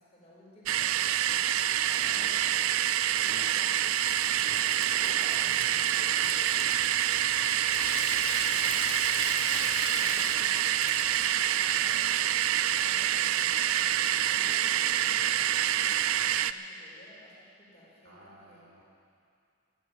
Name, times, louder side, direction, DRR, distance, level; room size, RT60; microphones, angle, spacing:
voice 1, 0.0-2.3 3.1-3.7 7.6-8.8 9.1-12.2 12.6-18.7, left 1 dB, 30° left, -6 dB, 4.8 m, -56 dB
sound 1, 0.7-16.5, right 11 dB, 85° right, 0.4 m, -27 dB
voice 2, 1.8-2.8 3.1-3.5 4.2-6.9 8.5-9.0 18.0-18.8, right 1 dB, 55° right, -7 dB, 2.8 m, -50 dB
Water tap faucet / Sink (filling or washing) / Trickle dribble, 3.6-13.5, left 11 dB, 70° left, 0.4 m, -43 dB
sound 2, 9.1-16.4, right 2 dB, 20° right, 0.8 m, -54 dB
13.5 x 10.5 x 9.3 m, 2.4 s
head